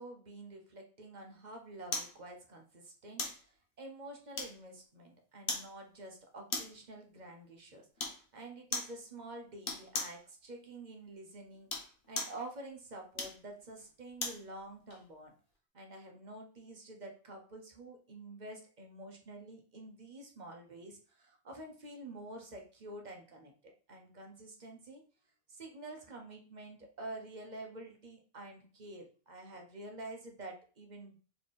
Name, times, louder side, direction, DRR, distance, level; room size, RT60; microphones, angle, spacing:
voice 1, 0.0-11.7 12.1-15.3 15.7-25.0 25.5-31.2, right 2 dB, 45° right, 2 dB, 1.0 m, -48 dB
sound 1, 1.9-2.2 3.2-3.4 4.4-4.8 5.5-5.7 6.5-6.8 8.0-8.2 8.7-9.0 9.6-10.2 11.5-12.4 13.1-14.4 14.9-15.0, left 3 dB, 60° left, 1.2 m, -38 dB
3.4 x 3.4 x 4.2 m, 0.39 s
omnidirectional pair, 1.0 m